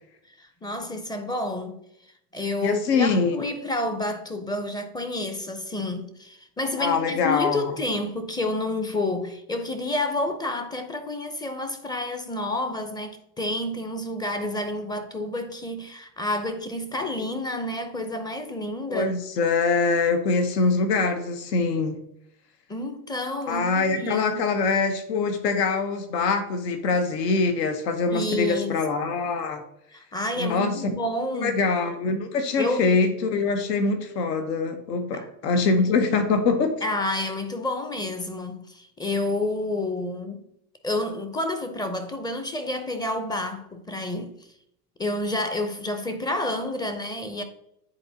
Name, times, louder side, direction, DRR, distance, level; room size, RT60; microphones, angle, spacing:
voice 1, 0.4-1.8 2.3-19.1 22.7-24.4 28.1-28.8 29.9-31.5 32.6-32.9 35.1-35.3 36.8-40.4 40.8-44.3 45.0-47.4, left 1 dB, 10° left, 0.5 m, -29 dB
voice 2, 2.6-3.3 6.8-7.6 18.9-22.0 23.5-29.6 30.4-30.7 31.4-36.7, left 4 dB, 80° left, 1.1 m, -24 dB
9.5 x 4.1 x 2.7 m
hypercardioid pair, 100°, 48 cm